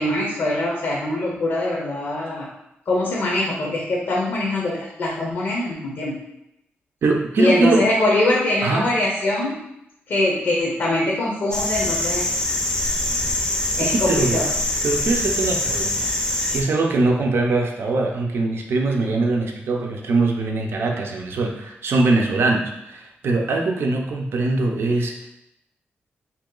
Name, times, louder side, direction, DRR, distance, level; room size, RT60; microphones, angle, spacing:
voice 1, 0.0-2.5 2.9-6.2 7.4-9.6 10.1-12.3 13.8-14.5, left 1 dB, 65° left, -3 dB, 0.6 m, -23 dB
voice 2, 7.0-7.9 8.6-8.9 13.8-14.4 14.8-25.3, right 3 dB, 70° right, 2 dB, 0.5 m, -22 dB
sound 1, 11.5-16.6, left 1 dB, 20° left, 0.5 m, -24 dB
2.9 x 2.8 x 3.7 m, 0.82 s
wide cardioid pair, 130°, 4 cm